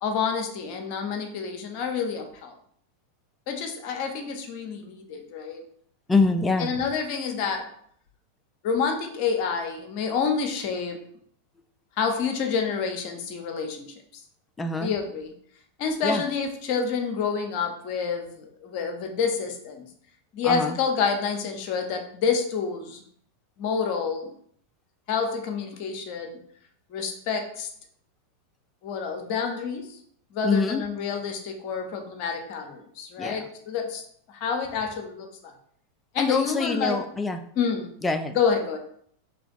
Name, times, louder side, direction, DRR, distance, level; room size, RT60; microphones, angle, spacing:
voice 1, 0.0-2.5 3.5-5.6 6.6-7.7 8.6-11.0 12.0-13.9 14.8-15.3 15.8-19.9 20.3-23.0 23.6-24.3 25.1-26.4 26.9-27.7 28.8-30.0 30.3-34.0 34.3-35.5 36.1-37.0 37.6-37.9 38.3-38.8, left 6 dB, 45° left, 4 dB, 0.7 m, -28 dB
voice 2, 6.1-6.7 14.6-14.9 16.0-16.2 20.4-20.8 30.4-30.8 33.2-33.5 36.2-37.4 38.0-38.4, left 3 dB, 10° left, 7 dB, 0.4 m, -25 dB
3.3 x 2.9 x 3.9 m, 0.64 s
figure-of-eight pair, 90°, 0 cm